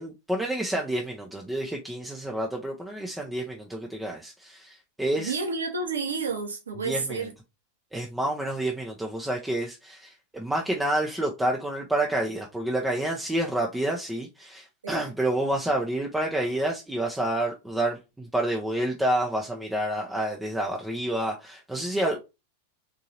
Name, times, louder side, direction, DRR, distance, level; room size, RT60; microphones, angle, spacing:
voice 1, 0.0-5.4 6.8-7.3 7.9-22.2, right 1 dB, 5° right, 0.7 m, -29 dB
voice 2, 5.2-7.3 14.8-15.0, right 4 dB, 70° right, 1.2 m, -30 dB
3.8 x 3.7 x 2.9 m
figure-of-eight pair, 90°, 0 cm